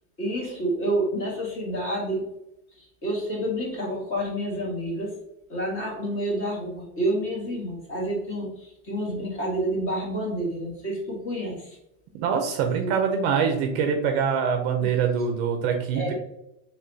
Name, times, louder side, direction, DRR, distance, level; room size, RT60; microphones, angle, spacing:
voice 1, 0.2-2.2 2.8-5.2 5.5-11.8 12.8-12.9 15.9-16.1, right 1 dB, 30° left, -3 dB, 1.6 m, -29 dB
voice 2, 12.1-16.1, right 6 dB, 45° right, 4 dB, 0.6 m, -24 dB
4.7 x 3.4 x 2.7 m, 0.83 s
supercardioid pair, 165°, 44 cm